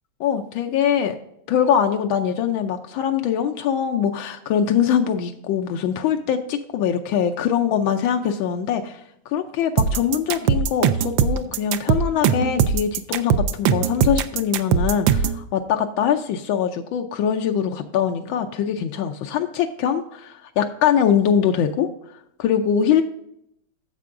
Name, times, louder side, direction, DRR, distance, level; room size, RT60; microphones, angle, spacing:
voice 1, 0.2-1.2 1.5-9.0 9.3-21.9 22.4-23.0, left 8 dB, 90° left, 4 dB, 1.4 m, -22 dB
sound 1, 9.8-15.4, right 7 dB, 80° right, 1.3 m, -20 dB
10.5 x 7.5 x 2.5 m, 0.74 s
omnidirectional pair, 2.1 m